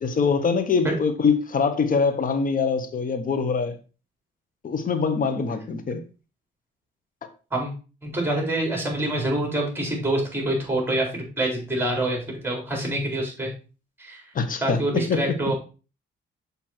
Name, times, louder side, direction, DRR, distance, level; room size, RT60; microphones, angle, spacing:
voice 1, 0.0-3.8 4.6-6.0 14.3-15.2, left 5 dB, 45° left, 1.2 m, -23 dB
voice 2, 8.0-13.5 14.0-14.2 14.6-15.5, right 1 dB, 10° right, 4.3 m, -26 dB
6.5 x 5.3 x 4.4 m
cardioid pair, 90°, 20 cm